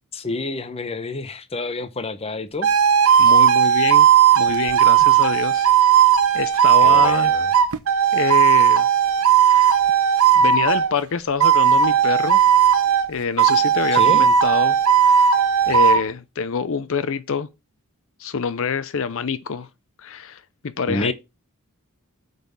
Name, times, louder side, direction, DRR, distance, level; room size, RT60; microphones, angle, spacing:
voice 1, 0.1-2.7 6.8-7.5 13.9-14.3 20.9-21.1, left 3 dB, 25° left, 0.7 m, -28 dB
sound 1, 2.6-10.9 11.4-13.1 13.4-16.0, right 8 dB, 70° right, 1.0 m, -16 dB
voice 2, 3.2-4.1 4.4-5.7 6.3-7.3 8.1-8.9 9.4-9.7 10.4-12.4 13.1-14.8 15.0-15.4 15.7-17.5 18.2-19.7 20.0-21.1, left 5 dB, 60° left, 0.6 m, -25 dB
8.5 x 4.1 x 6.8 m
head